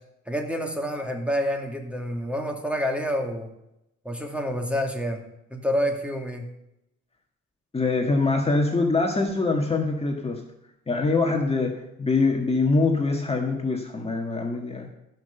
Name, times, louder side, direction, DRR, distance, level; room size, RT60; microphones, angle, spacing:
voice 1, 0.3-3.5 4.0-5.2 5.5-6.5, equal, 5° right, 3 dB, 2.2 m, -28 dB
voice 2, 7.7-10.4 10.9-11.7 12.0-14.9, left 3 dB, 20° left, 1 dB, 1.7 m, -24 dB
15.0 x 6.1 x 6.9 m, 0.85 s
cardioid pair, 90°, 30 cm